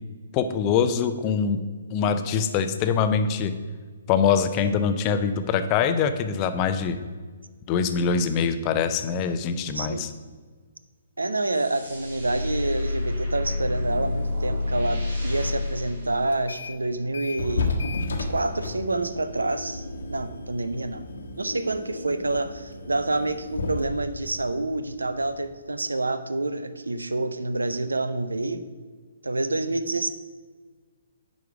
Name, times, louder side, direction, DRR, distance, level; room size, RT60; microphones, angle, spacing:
voice 1, 0.3-1.6 1.9-3.5 4.1-7.0 7.7-10.1, left 6 dB, 30° left, 9 dB, 0.6 m, -23 dB
voice 2, 9.7-10.1 11.2-17.7 18.2-21.0 21.4-28.7 29.2-30.1, right 2 dB, 80° right, 11 dB, 0.6 m, -28 dB
sound 1, 11.5-16.9, left 2 dB, 65° right, 2.6 m, -29 dB
sound 2, 16.3-16.8 17.1-25.6, left 3 dB, 65° left, 1.2 m, -33 dB
9.3 x 5.2 x 4.8 m, 1.5 s
figure-of-eight pair, 130°, 0 cm